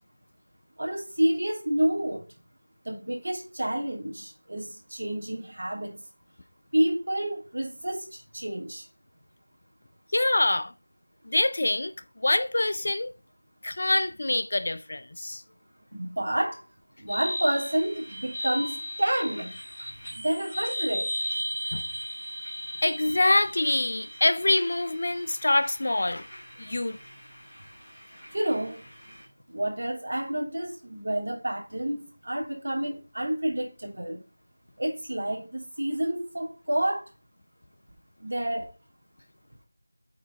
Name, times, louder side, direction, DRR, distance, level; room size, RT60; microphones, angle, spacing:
voice 1, 0.8-2.2 2.8-6.0 6.7-8.8 15.9-16.6 17.0-19.6 20.1-21.1 28.3-28.8 29.5-34.2 34.8-37.1 38.2-38.7, right 1 dB, 45° right, 3.1 m, -29 dB
voice 2, 10.1-10.7 11.3-11.9 12.2-13.1 13.6-15.4 21.7-21.8 22.8-26.2 26.6-27.0, left 2 dB, 35° left, 0.4 m, -25 dB
sound 1, 17.1-29.2, equal, 5° left, 2.3 m, -37 dB
8.4 x 4.6 x 4.6 m
figure-of-eight pair, 180°, 0 cm